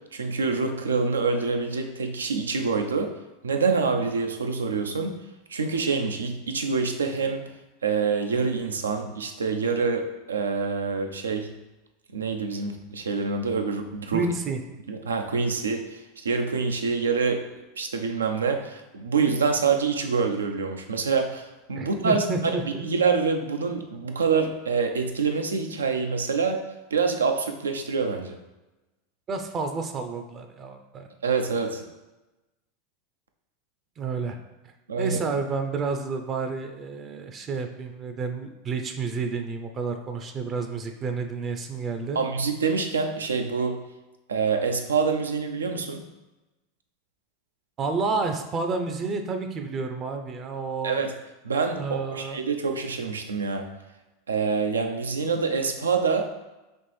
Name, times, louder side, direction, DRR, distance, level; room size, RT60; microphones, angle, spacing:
voice 1, 0.1-3.1 3.4-5.1 5.5-7.4 7.8-11.5 12.1-14.3 14.9-17.4 17.8-26.6 26.9-28.4 31.2-31.8 34.9-35.2 42.2-43.8 44.3-46.0 50.8-51.1 51.4-53.7 54.3-56.3, right 5 dB, 90° right, 5 dB, 0.5 m, -26 dB
voice 2, 14.1-14.6 21.8-22.8 29.3-31.1 34.0-34.4 35.0-42.2 47.8-51.0 51.8-52.4, right 4 dB, 35° right, 6 dB, 0.5 m, -30 dB
4.2 x 3.1 x 3.3 m, 1.0 s
hypercardioid pair, 95°, 0 cm